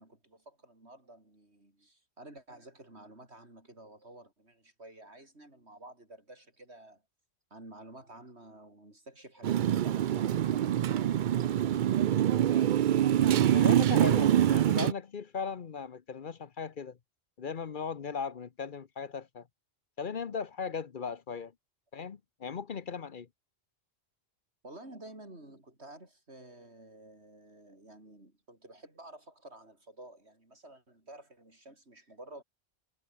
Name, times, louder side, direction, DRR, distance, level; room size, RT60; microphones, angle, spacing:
voice 1, 0.0-7.0 7.5-13.0 24.6-32.4, right 1 dB, 90° right, 6.7 m, -52 dB
Motorcycle, 9.4-14.9, right 11 dB, 60° right, 0.6 m, -25 dB
voice 2, 13.5-17.0 17.4-19.5 20.0-21.5 21.9-23.3, left 6 dB, 55° left, 1.0 m, -37 dB
omnidirectional pair, 1.1 m